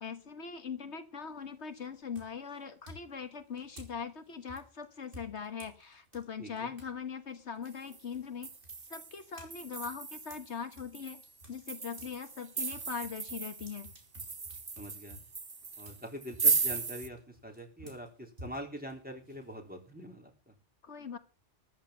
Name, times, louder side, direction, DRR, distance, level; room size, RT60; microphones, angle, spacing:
voice 1, 0.0-8.5 8.9-11.2 11.5-13.9 20.8-21.2, left 6 dB, 70° left, 8 dB, 1.6 m, -41 dB
sound 1, 1.2-1.6 2.1-7.0 7.3-12.2 12.5-19.9, equal, 50° right, 3.7 m, -54 dB
voice 2, 6.4-6.7 14.8-15.2 15.8-17.2 17.4-20.5, equal, 5° right, 1 dB, 3.8 m, -44 dB
sound 2, 7.7-8.0 8.4-17.1, right 4 dB, 30° right, 0.5 m, -35 dB
14.0 x 10.5 x 5.7 m, 0.33 s
omnidirectional pair, 1.2 m